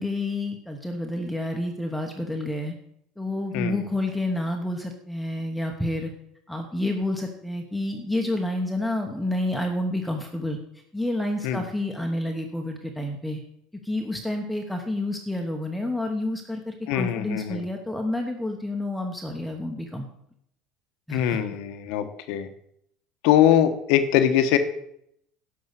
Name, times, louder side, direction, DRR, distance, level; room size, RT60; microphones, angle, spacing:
voice 1, 0.0-2.7 3.2-6.1 6.5-10.6 10.9-13.4 13.8-20.0 21.1-21.4, left 1 dB, ahead, 2 dB, 1.1 m, -29 dB
voice 2, 16.9-17.6 21.1-22.5 23.2-24.6, left 10 dB, 70° left, 9 dB, 1.2 m, -22 dB
12.0 x 5.5 x 8.2 m, 0.74 s
cardioid pair, 145°, 0 cm